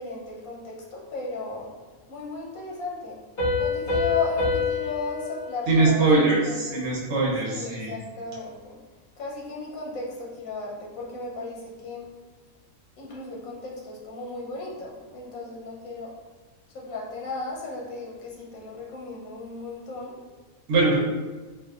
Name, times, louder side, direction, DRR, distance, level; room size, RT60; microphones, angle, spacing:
voice 1, 0.0-1.7 2.1-3.2 3.6-6.1 6.4-6.9 7.4-8.8 9.2-12.1 13.0-16.1 16.7-20.2, left 3 dB, 85° left, -3 dB, 1.1 m, -35 dB
Piano, 3.4-6.8, left 4 dB, 40° left, 1.5 m, -28 dB
voice 2, 5.7-8.0 20.7-21.0, right 3 dB, 60° right, -5 dB, 0.9 m, -22 dB
3.7 x 2.4 x 2.3 m, 1.3 s
omnidirectional pair, 1.4 m